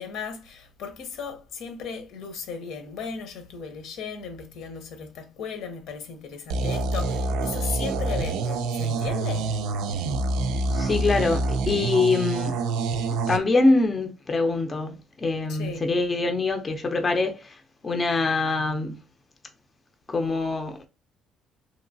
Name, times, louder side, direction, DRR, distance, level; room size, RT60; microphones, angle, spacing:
voice 1, 0.0-9.5 15.5-15.8, left 6 dB, 75° left, 0.8 m, -36 dB
sound 1, 6.5-13.4, right 3 dB, 90° right, 0.3 m, -26 dB
voice 2, 10.7-12.5 13.0-19.0 20.1-20.8, left 3 dB, 25° left, 0.5 m, -24 dB
3.0 x 2.8 x 2.6 m
cardioid pair, 120°, 0 cm